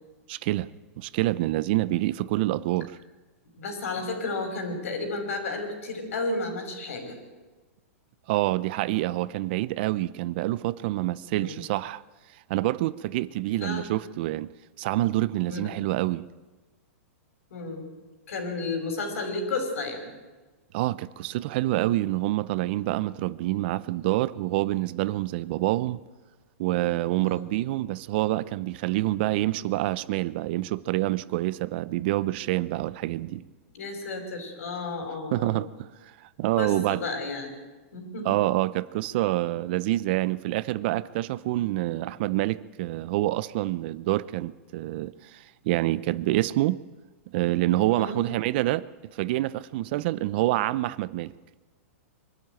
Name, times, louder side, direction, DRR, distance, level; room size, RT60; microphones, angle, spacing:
voice 1, 0.3-0.7 1.0-2.9 8.3-12.0 12.5-14.5 14.8-16.3 20.7-26.0 26.6-33.4 35.3-35.9 36.4-37.0 38.2-46.8 47.3-51.3, right 17 dB, 45° right, 0.6 m, -27 dB
voice 2, 3.6-7.2 11.3-11.6 13.6-14.0 15.5-15.7 17.5-17.9 18.3-20.1 27.2-27.5 33.7-35.6 36.6-37.5 37.9-38.3 47.9-48.2, left 3 dB, 75° left, 5.5 m, -32 dB
23.5 x 12.5 x 9.1 m
hypercardioid pair, 155°, 8 cm